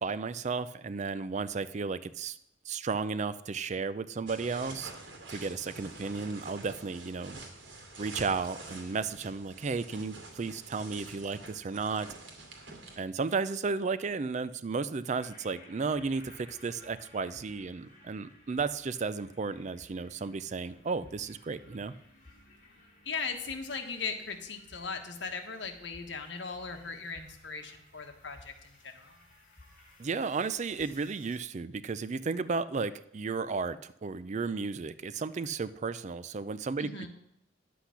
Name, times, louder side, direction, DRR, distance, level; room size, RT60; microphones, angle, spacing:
voice 1, 0.0-2.4 2.7-4.9 5.3-7.4 8.0-12.1 13.0-21.9 30.0-37.1, right 4 dB, 40° right, 15 dB, 0.4 m, -33 dB
sound 1, 4.3-13.0, right 2 dB, 85° right, 2.4 m, -47 dB
sound 2, 15.1-31.4, left 2 dB, 45° left, 3.0 m, -57 dB
voice 2, 23.0-29.2 36.8-37.1, left 5 dB, 70° left, 5 dB, 1.4 m, -38 dB
10.0 x 8.1 x 5.8 m, 0.79 s
head